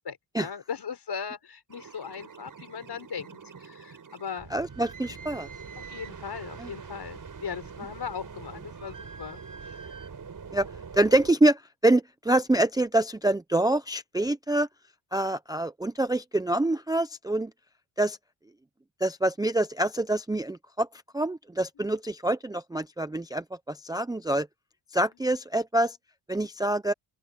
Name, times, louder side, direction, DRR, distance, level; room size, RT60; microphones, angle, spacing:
voice 1, 0.0-4.5 5.8-9.8 25.1-25.2, left 6 dB, 55° left, 6.3 m, -38 dB
sound 1, 1.7-11.3, right 5 dB, 40° right, 6.8 m, -44 dB
voice 2, 4.5-5.5 6.6-6.7 10.5-10.7 10.9-14.7 15.1-17.5 18.0-18.2 19.0-20.9 21.1-24.5 24.9-26.0 26.3-26.9, right 1 dB, 10° right, 0.5 m, -26 dB
open air
wide cardioid pair, 150°, 48 cm